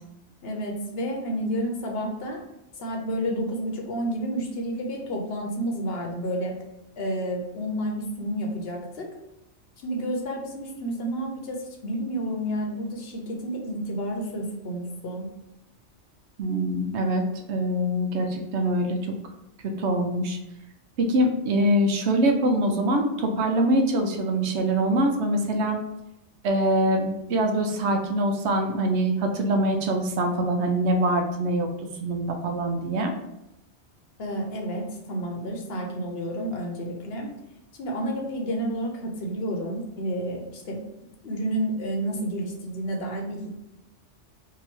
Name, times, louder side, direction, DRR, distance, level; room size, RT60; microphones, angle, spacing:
voice 1, 0.4-2.4 2.8-6.5 7.0-9.1 9.8-15.3 34.2-37.3 37.8-40.8 41.2-43.5, equal, 60° left, 1 dB, 0.9 m, -30 dB
voice 2, 16.4-17.2 17.5-19.0 19.6-20.4 21.0-25.8 26.4-31.7 32.0-33.1, right 1 dB, 70° right, 4 dB, 0.9 m, -24 dB
2.9 x 2.7 x 4.2 m, 0.87 s
omnidirectional pair, 1.2 m